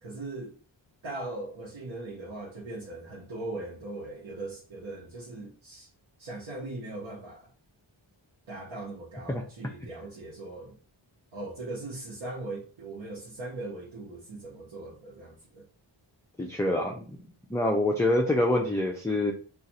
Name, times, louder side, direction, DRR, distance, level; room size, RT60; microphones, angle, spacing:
voice 1, 0.0-0.5 1.0-5.9 6.2-7.5 8.5-10.8 11.3-15.6, right 2 dB, 80° right, 0.9 m, -39 dB
voice 2, 16.4-17.2 17.5-19.3, left 1 dB, 5° left, 0.4 m, -26 dB
2.6 x 2.4 x 4.0 m
wide cardioid pair, 70°, 47 cm